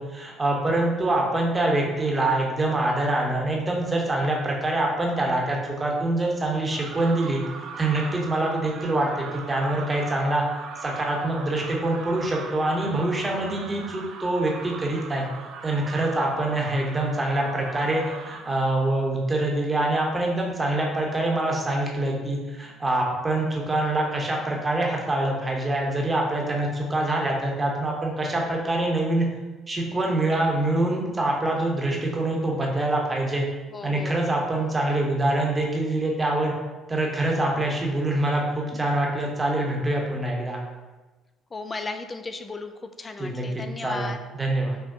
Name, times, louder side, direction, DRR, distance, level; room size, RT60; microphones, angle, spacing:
voice 1, 0.0-7.4 7.8-10.4 10.8-15.2 15.6-29.3 29.7-33.5 33.8-36.5 36.9-40.6 43.2-44.8, right 2 dB, 20° right, -1 dB, 0.9 m, -25 dB
sound 1, 6.7-18.6, right 5 dB, 65° right, 0.4 m, -40 dB
voice 2, 33.7-34.2 41.5-42.7 43.0-44.2, left 3 dB, 30° left, 8 dB, 0.4 m, -35 dB
5.7 x 2.2 x 2.7 m, 1.2 s
supercardioid pair, 80°, 0 cm